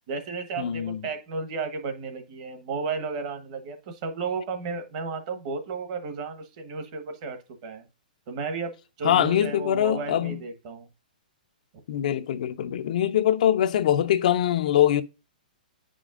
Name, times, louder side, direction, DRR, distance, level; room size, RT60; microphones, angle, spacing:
voice 1, 0.1-7.9 8.3-10.9, right 4 dB, 40° right, 1.1 m, -33 dB
voice 2, 0.6-1.0 9.0-10.4 11.9-15.0, left 11 dB, 60° left, 0.4 m, -23 dB
9.3 x 5.0 x 2.4 m
hypercardioid pair, 155°, 5 cm